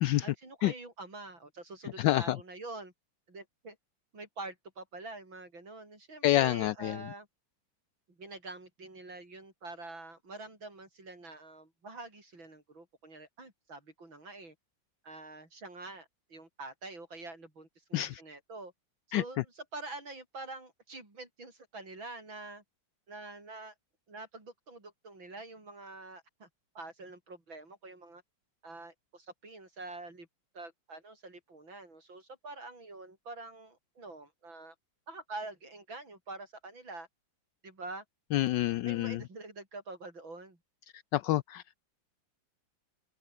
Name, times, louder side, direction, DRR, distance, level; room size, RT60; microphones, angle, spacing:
voice 1, 0.2-2.9 3.3-3.8 4.1-7.3 8.1-14.6 15.0-18.7 19.1-22.6 23.1-23.7 24.1-26.5 26.7-28.2 28.6-30.3 30.5-34.8 35.1-37.1 37.6-38.0 38.8-40.6, right 2 dB, 80° right, 7.4 m, -46 dB
voice 2, 2.0-2.4 6.2-7.0 17.9-18.2 19.1-19.2 38.3-39.2 41.1-41.7, left 15 dB, 75° left, 1.2 m, -28 dB
omnidirectional pair, 2.1 m